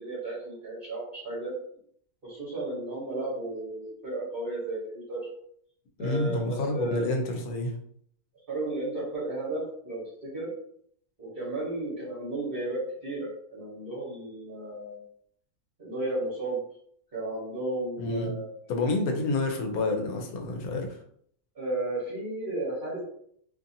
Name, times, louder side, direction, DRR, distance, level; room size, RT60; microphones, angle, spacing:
voice 1, 0.0-1.5 2.2-5.2 6.0-7.1 8.5-10.5 11.2-15.0 15.8-16.6 17.1-18.5 21.5-23.0, right 2 dB, 40° right, -8 dB, 1.1 m, -33 dB
voice 2, 6.0-7.8 18.0-18.3 18.7-21.0, left 2 dB, 90° left, 3 dB, 1.1 m, -29 dB
2.8 x 2.6 x 2.6 m, 0.65 s
omnidirectional pair, 1.5 m